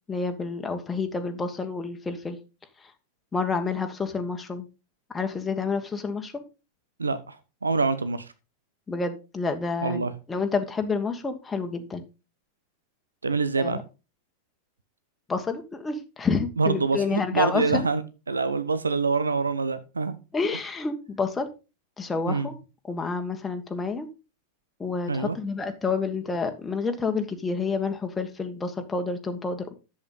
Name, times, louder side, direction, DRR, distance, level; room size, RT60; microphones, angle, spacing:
voice 1, 0.1-2.4 3.3-4.7 5.1-6.4 8.9-12.0 13.6-13.8 15.3-17.9 20.3-21.5 22.0-22.5 22.9-24.1 24.8-29.7, left 4 dB, 15° left, 1.4 m, -29 dB
voice 2, 7.0-7.4 7.6-8.3 9.8-10.1 13.2-13.8 16.6-18.0 18.3-20.2 22.3-22.5 25.1-25.4, right 4 dB, 75° right, 0.9 m, -25 dB
11.0 x 7.9 x 4.0 m
figure-of-eight pair, 90°, 0 cm